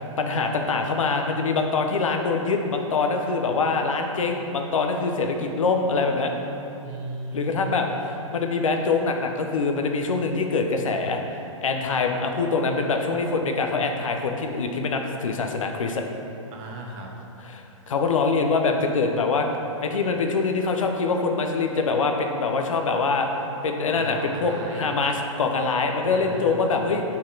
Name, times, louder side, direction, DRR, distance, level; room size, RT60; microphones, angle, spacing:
voice 1, 0.0-6.3 7.3-7.8 8.3-11.2 11.6-16.0 17.5-19.5 19.8-23.3 23.6-27.0, left 4 dB, 80° left, 4 dB, 0.7 m, -24 dB
voice 2, 6.8-7.8 16.5-17.1 23.9-24.8 26.1-26.8, right 2 dB, 30° right, -1 dB, 0.9 m, -36 dB
6.3 x 4.2 x 3.8 m, 2.7 s
hypercardioid pair, 130°, 17 cm